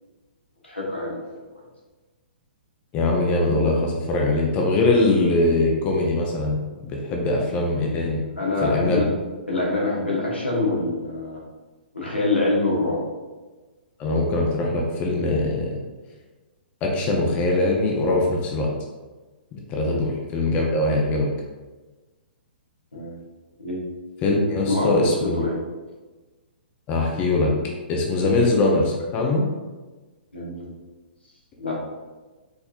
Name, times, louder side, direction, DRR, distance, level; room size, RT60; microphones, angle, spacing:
voice 1, 0.6-1.2 8.4-9.1 9.5-11.4 11.9-13.0 19.8-20.0 22.9-23.2 23.6-23.8 24.7-25.6 28.2-28.3 30.3-30.7 31.6-31.8, left 2 dB, 90° left, -4 dB, 1.2 m, -25 dB
voice 2, 2.9-8.2 8.6-9.0 14.0-15.8 16.8-18.7 19.5-21.3 24.2-25.4 26.9-27.5 27.9-29.5, left 2 dB, 25° left, -1 dB, 0.6 m, -22 dB
4.4 x 3.2 x 2.4 m, 1.3 s
figure-of-eight pair, 120°, 6 cm